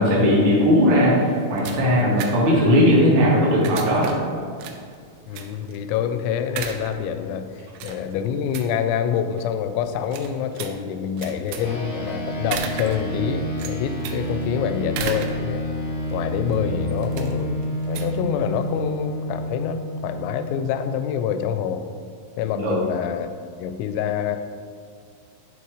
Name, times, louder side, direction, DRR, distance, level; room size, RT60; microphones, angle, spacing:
voice 1, 0.0-4.1 22.5-22.7, equal, 65° right, -7 dB, 1.2 m, -18 dB
sound 1, 1.0-18.9, right 6 dB, 90° right, 3.4 m, -37 dB
voice 2, 5.3-15.7 16.1-21.9 22.4-23.3 23.6-24.4, left 8 dB, 85° left, 9 dB, 3.1 m, -26 dB
sound 2, 11.6-21.3, equal, 55° left, 1.2 m, -29 dB
10.0 x 4.4 x 4.8 m, 2.2 s
omnidirectional pair, 5.9 m